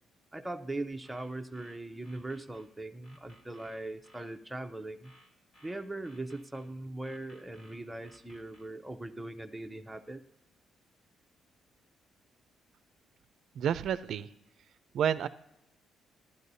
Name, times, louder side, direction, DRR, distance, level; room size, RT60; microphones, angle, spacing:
voice 1, 0.3-5.1 5.6-10.2, right 2 dB, 10° right, 6 dB, 0.6 m, -40 dB
sound 1, 1.0-2.7 3.0-4.3 5.0-6.7 7.0-8.7, equal, 65° left, 4.5 m, -60 dB
voice 2, 13.6-14.3 14.9-15.3, right 9 dB, 70° right, 14 dB, 0.4 m, -29 dB
14.5 x 11.5 x 2.7 m, 0.83 s
cardioid pair, 90°, 0 cm